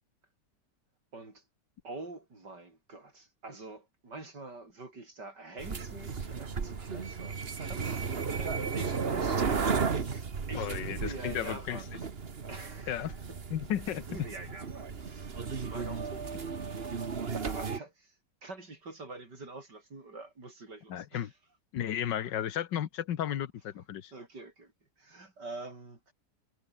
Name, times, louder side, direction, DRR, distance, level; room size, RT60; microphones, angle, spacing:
voice 1, 1.1-1.4 1.8-11.9 12.5-13.2 14.1-16.4 17.4-21.3 24.1-24.7 25.0-26.1, right 3 dB, 70° right, 6.0 m, -46 dB
sound 1, 5.6-17.8, right 5 dB, 35° right, 1.5 m, -34 dB
voice 2, 10.5-12.0 12.9-13.1 13.5-14.1 20.9-21.3 21.7-24.1, left 10 dB, 85° left, 1.8 m, -34 dB
omnidirectional pair, 1.9 m